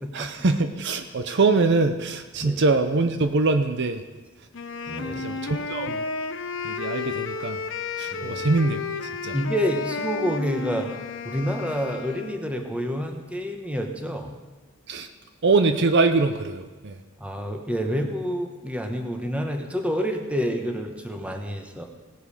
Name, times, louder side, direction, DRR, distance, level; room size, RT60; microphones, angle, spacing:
voice 1, 0.1-4.0 5.0-6.0 6.6-7.6 8.0-8.8 9.2-9.3 14.9-15.1 15.4-17.0, right 3 dB, 55° right, 8 dB, 0.7 m, -23 dB
Wind instrument woodwind instrument, 4.5-12.5, left 4 dB, 60° left, 0.7 m, -32 dB
voice 2, 4.9-5.3 8.1-8.4 9.3-10.9 11.2-14.3 17.2-21.9, equal, 5° right, 4 dB, 1.1 m, -28 dB
17.5 x 8.0 x 5.0 m, 1.3 s
head